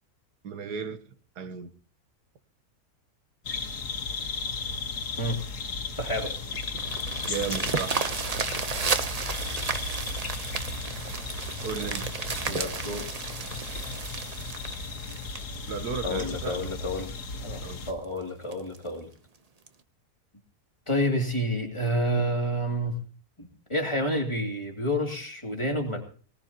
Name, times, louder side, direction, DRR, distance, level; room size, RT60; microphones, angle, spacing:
voice 1, 0.4-1.0 1.4-1.7 7.3-8.0 11.6-12.1 15.7-16.6 17.6-17.9, right 6 dB, 80° right, 1.6 m, -34 dB
sound 1, 3.4-17.9, left 4 dB, 80° left, 2.0 m, -35 dB
voice 2, 6.0-6.3 12.5-13.1 16.0-17.1 17.4-19.1 20.9-23.0 23.4-26.0, equal, 20° left, 2.7 m, -29 dB
sound 2, 6.0-16.5 17.1-17.2 17.6-17.7 18.0-18.1 18.5-18.8 19.7-19.8, right 4 dB, 35° right, 0.7 m, -33 dB
19.5 x 19.0 x 2.9 m
omnidirectional pair, 1.7 m